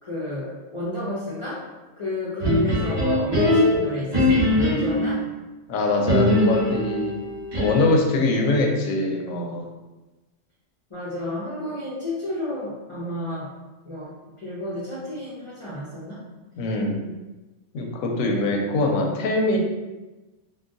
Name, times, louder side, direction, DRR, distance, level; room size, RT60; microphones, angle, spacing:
voice 1, 0.0-1.6 2.0-5.2 10.9-13.5 13.9-16.2, left 1 dB, 50° left, -9 dB, 0.3 m, -31 dB
sound 1, 2.4-5.2 6.1-8.0, left 1 dB, 25° right, 0.7 m, -21 dB
voice 2, 5.7-7.2 7.5-9.7 16.6-17.1 17.7-19.6, left 2 dB, 90° left, 1 dB, 1.0 m, -23 dB
3.8 x 2.2 x 2.5 m, 1.1 s
omnidirectional pair, 1.3 m